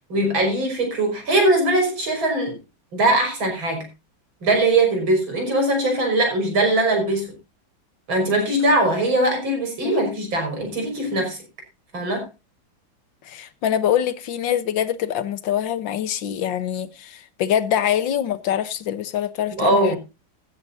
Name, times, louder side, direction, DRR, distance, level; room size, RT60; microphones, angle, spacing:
voice 1, 0.1-2.6 2.9-3.9 4.4-7.3 8.1-11.4 11.9-12.3 19.6-20.0, right 2 dB, 75° right, 6.3 m, -21 dB
voice 2, 13.3-20.0, left 10 dB, 70° left, 1.7 m, -24 dB
15.0 x 13.5 x 2.7 m
omnidirectional pair, 2.2 m